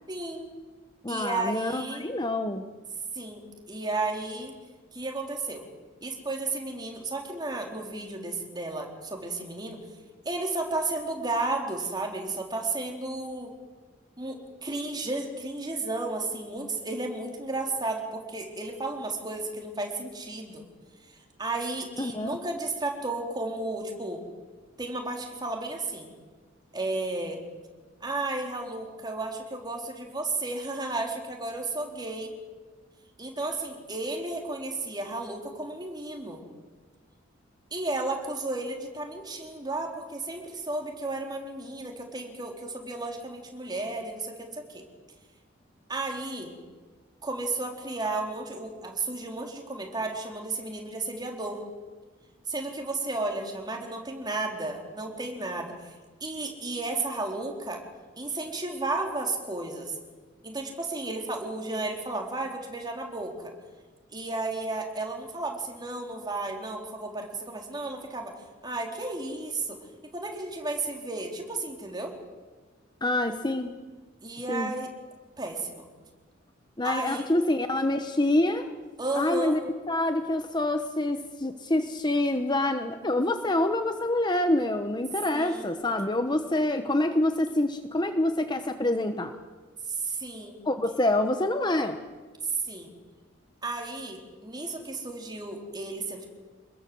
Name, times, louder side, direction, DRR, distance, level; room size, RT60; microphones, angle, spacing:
voice 1, 0.1-0.5 1.1-2.1 3.1-4.5 4.9-5.6 6.0-9.8 10.2-13.5 14.2-20.6 21.4-24.2 24.8-26.1 26.7-27.4 28.0-32.3 33.2-36.4 37.7-44.8 45.9-46.6 47.2-51.6 52.5-55.9 56.2-57.8 58.2-59.9 60.4-63.5 64.1-68.3 68.6-69.8 70.1-72.2 74.2-74.9 75.4-75.8 76.8-77.3 79.0-79.6 85.3-85.7 89.9-90.6 92.4-92.9 93.6-96.2, right 2 dB, 20° right, 2 dB, 3.9 m, -33 dB
voice 2, 1.0-2.7 22.0-22.4 73.0-73.7 74.5-74.7 76.8-78.7 79.1-79.6 79.9-89.3 90.6-92.0, left 1 dB, 20° left, 7 dB, 1.1 m, -26 dB
26.5 x 21.0 x 7.9 m, 1.4 s
head